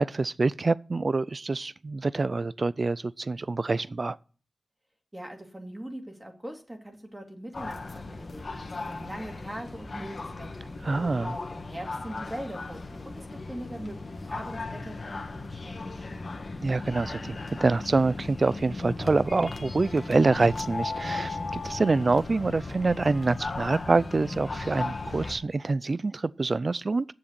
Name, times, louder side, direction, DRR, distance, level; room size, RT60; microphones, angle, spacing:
voice 1, 0.0-4.2 10.8-11.4 16.6-27.1, right 3 dB, 50° right, 0.4 m, -26 dB
voice 2, 5.1-10.7 11.4-16.3, right 1 dB, 20° right, 2.4 m, -41 dB
sound 1, 7.5-25.4, left 3 dB, 55° left, 1.5 m, -36 dB
7.6 x 7.1 x 8.0 m
cardioid pair, 50°, 0 cm